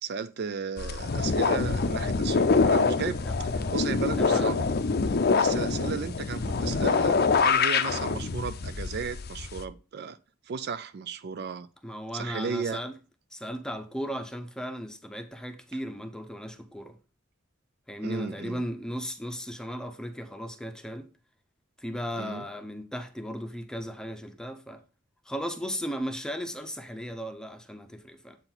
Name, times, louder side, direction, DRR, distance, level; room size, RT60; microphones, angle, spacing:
voice 1, 0.0-4.7 5.3-10.2 10.5-11.7 12.1-12.8 18.0-18.6 22.2-22.5, right 6 dB, 55° right, 0.4 m, -35 dB
sound 1, 0.8-9.6, left 4 dB, 55° left, 0.6 m, -25 dB
voice 2, 4.2-4.5 11.8-13.0 13.3-17.0 17.9-21.1 21.8-24.8 25.3-28.4, equal, 5° left, 0.7 m, -36 dB
7.8 x 4.5 x 3.9 m
head